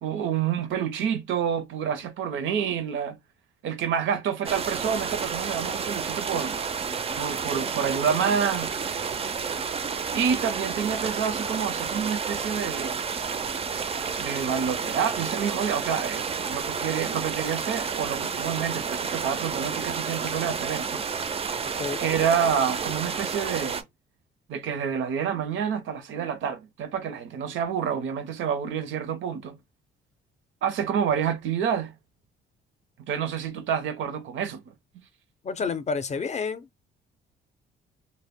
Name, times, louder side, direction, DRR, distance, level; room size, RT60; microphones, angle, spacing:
voice 1, 0.0-3.2 3.6-6.6 7.2-8.7 10.1-13.0 14.2-21.0 22.0-23.8 24.5-29.5 30.6-31.9 33.1-34.6 35.6-35.7, right 7 dB, 75° right, 0.6 m, -28 dB
sound 1, 4.4-23.8, right 6 dB, 30° right, 0.4 m, -30 dB
voice 2, 35.4-36.7, left 5 dB, 35° left, 0.5 m, -29 dB
2.1 x 2.0 x 3.5 m
cardioid pair, 90°, 20 cm